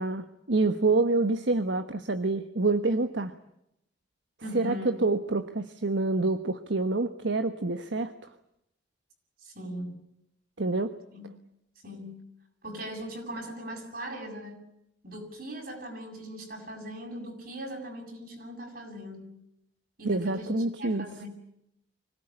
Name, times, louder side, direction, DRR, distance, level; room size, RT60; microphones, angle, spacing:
voice 1, 0.0-3.3 4.5-8.1 10.6-10.9 20.0-21.0, right 3 dB, 75° right, 9 dB, 1.3 m, -27 dB
voice 2, 4.4-5.0 9.4-10.0 11.1-11.2 11.8-12.2 12.6-14.6 15.0-19.3 20.0-20.5 20.8-21.3, equal, 50° right, 2 dB, 7.6 m, -39 dB
25.5 x 18.0 x 9.9 m, 0.78 s
head